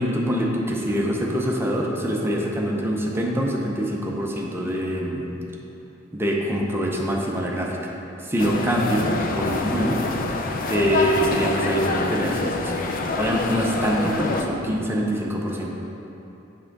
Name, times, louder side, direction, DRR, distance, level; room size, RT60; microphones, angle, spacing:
voice 1, 0.0-5.3 6.1-7.9 8.2-10.0 10.3-12.8 13.1-15.7, equal, 10° right, -2 dB, 0.7 m, -24 dB
sound 1, 8.4-14.4, left 3 dB, 45° left, 0.5 m, -26 dB
7.4 x 3.6 x 5.9 m, 2.9 s
head